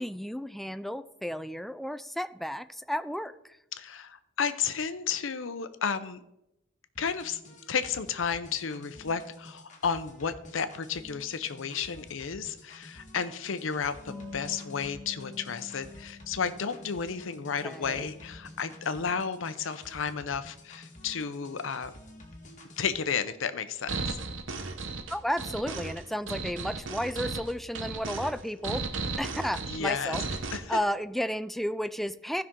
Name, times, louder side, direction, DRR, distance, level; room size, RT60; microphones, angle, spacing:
voice 1, 0.0-3.6 17.6-18.1 25.1-28.8 29.2-30.2 30.7-32.4, equal, ahead, 12 dB, 0.3 m, -33 dB
voice 2, 3.7-6.2 7.0-7.4 7.7-21.9 22.8-24.2 29.7-30.2 30.5-30.8, left 6 dB, 75° left, 12 dB, 0.7 m, -32 dB
sound 1, 6.9-22.9, left 1 dB, 40° left, 1.6 m, -50 dB
sound 2, 14.1-20.3, left 3 dB, 20° left, 1.7 m, -49 dB
sound 3, 23.9-30.6, right 4 dB, 70° right, 1.0 m, -35 dB
15.0 x 5.8 x 3.8 m, 0.86 s
head